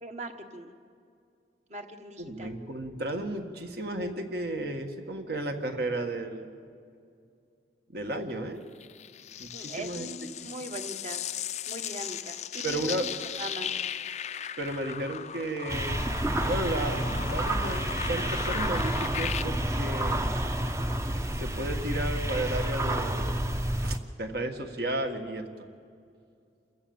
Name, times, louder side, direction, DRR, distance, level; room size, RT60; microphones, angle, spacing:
voice 1, 0.0-0.7 1.7-2.5 9.5-11.2 11.7-13.0 13.4-13.7, right 2 dB, 40° right, 6 dB, 1.4 m, -40 dB
voice 2, 2.2-6.5 7.9-8.6 9.4-10.3 12.6-13.1 14.6-16.0 16.5-20.3 21.4-23.4 23.8-25.5, right 1 dB, 60° right, 5 dB, 1.7 m, -33 dB
sound 1, 8.8-19.4, left 9 dB, 40° left, 0.4 m, -37 dB
sound 2, 15.7-24.0, right 1 dB, 15° right, 0.7 m, -29 dB
28.5 x 15.5 x 7.2 m, 2.4 s
head